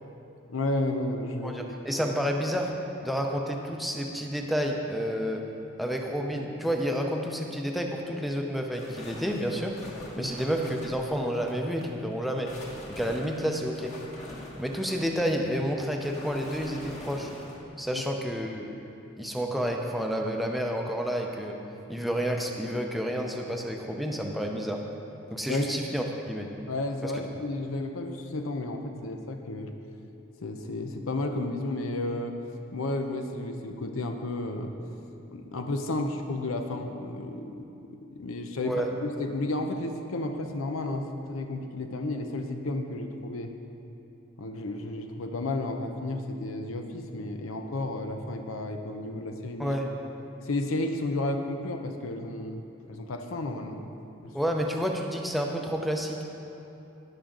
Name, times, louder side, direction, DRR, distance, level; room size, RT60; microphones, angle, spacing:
voice 1, 0.5-1.7 10.2-10.3 17.9-18.0 25.5-25.7 26.7-29.7 30.4-32.3 32.7-34.7 35.3-43.5 44.4-49.8 50.4-53.8 54.2-54.3, left 2 dB, 85° left, 5 dB, 0.7 m, -32 dB
voice 2, 1.4-2.7 3.0-5.4 5.8-9.7 10.2-12.5 12.9-13.9 14.6-17.3 17.8-18.7 19.2-21.6 21.9-24.8 25.3-26.5 27.0-27.1 38.6-38.9 49.6-49.9 54.3-56.2, equal, ahead, 1 dB, 0.6 m, -30 dB
sound 1, 8.7-11.9 12.3-17.6, left 1 dB, 35° left, 1.4 m, -44 dB
17.0 x 6.3 x 3.8 m, 2.9 s
head